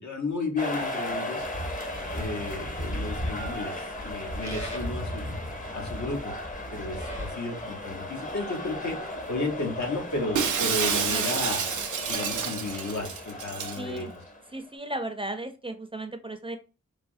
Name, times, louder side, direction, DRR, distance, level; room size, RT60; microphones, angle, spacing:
voice 1, 0.0-1.5 2.1-5.3 5.7-6.3 6.7-11.7 12.1-14.1, left 3 dB, 75° left, 2 dB, 0.9 m, -33 dB
sound 1, 0.6-14.7, left 1 dB, 30° left, 0.7 m, -37 dB
Livestock farm animals working animals, 1.4-7.3, equal, 50° left, 1.4 m, -36 dB
Shatter, 10.3-13.8, right 7 dB, 90° right, 0.5 m, -29 dB
voice 2, 13.8-14.1 14.5-16.6, right 1 dB, 20° right, 6 dB, 0.4 m, -35 dB
3.2 x 2.0 x 2.5 m, 0.32 s
cardioid pair, 55°, 29 cm